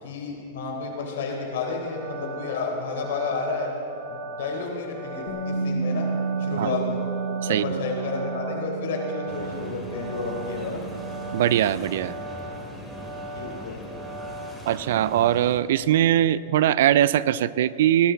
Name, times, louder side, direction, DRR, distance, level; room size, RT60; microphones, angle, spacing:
voice 1, 0.0-3.7 4.1-6.1 6.4-7.0 7.5-10.8 13.4-13.8, left 4 dB, 75° left, 0 dB, 3.9 m, -31 dB
sound 1, 1.6-14.5, right 1 dB, 20° right, 1.3 m, -39 dB
Bass guitar, 5.3-11.5, right 5 dB, 55° left, 2.3 m, -31 dB
sound 2, 9.3-15.6, equal, 5° right, 2.4 m, -41 dB
voice 2, 11.3-12.2 14.7-18.1, right 11 dB, 70° right, 18 dB, 0.4 m, -21 dB
19.0 x 13.0 x 4.6 m, 2.8 s
supercardioid pair, 145°, 0 cm